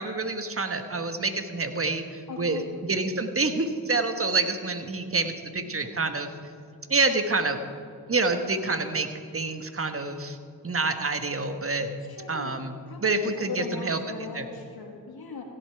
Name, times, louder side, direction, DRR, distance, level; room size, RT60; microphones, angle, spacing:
voice 1, 0.0-6.3 6.9-7.6 8.1-9.1 9.3-10.4 10.6-11.9 12.3-14.0 14.3-14.4, right 3 dB, 30° right, 8 dB, 1.3 m, -27 dB
voice 2, 2.3-2.7 5.6-6.1 12.1-12.6 12.9-15.4, left 4 dB, 55° left, 2 dB, 1.9 m, -38 dB
16.0 x 7.9 x 4.7 m, 2.4 s
supercardioid pair, 40°, 43 cm